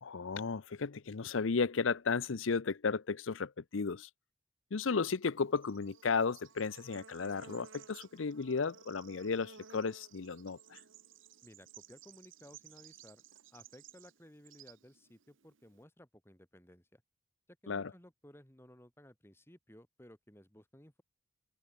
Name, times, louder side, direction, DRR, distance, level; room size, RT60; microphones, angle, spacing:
voice 1, 0.0-4.1 4.7-10.8 17.7-17.9, left 5 dB, 80° left, 0.7 m, -34 dB
Bird / Insect, 5.2-15.8, right 7 dB, 75° right, 1.1 m, -57 dB
voice 2, 11.4-13.2 13.5-17.0 17.6-21.0, equal, 10° left, 2.1 m, -58 dB
head